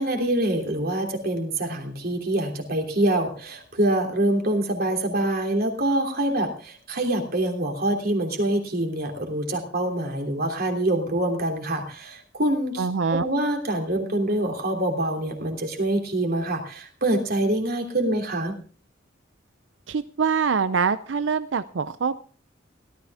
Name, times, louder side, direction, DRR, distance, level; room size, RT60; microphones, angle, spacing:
voice 1, 0.0-18.6, right 1 dB, 55° right, 3 dB, 3.1 m, -25 dB
voice 2, 12.8-13.3 19.9-22.2, right 5 dB, 70° right, 13 dB, 0.6 m, -24 dB
17.5 x 13.0 x 3.5 m, 0.38 s
head